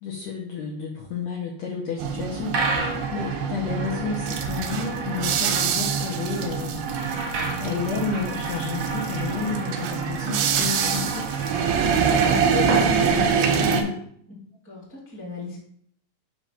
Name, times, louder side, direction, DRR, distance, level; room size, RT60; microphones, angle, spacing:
voice 1, 0.0-2.6 3.1-6.8 7.6-11.2 11.9-14.0, left 5 dB, 85° left, -3 dB, 1.5 m, -31 dB
sound 1, 2.0-13.8, right 6 dB, 90° right, 2.5 m, -25 dB
sound 2, 2.5-13.7, right 3 dB, 70° right, 1.3 m, -32 dB
voice 2, 12.2-12.5 14.6-15.6, left 4 dB, 15° right, -7 dB, 0.5 m, -36 dB
5.9 x 3.0 x 5.6 m, 0.66 s
omnidirectional pair, 4.3 m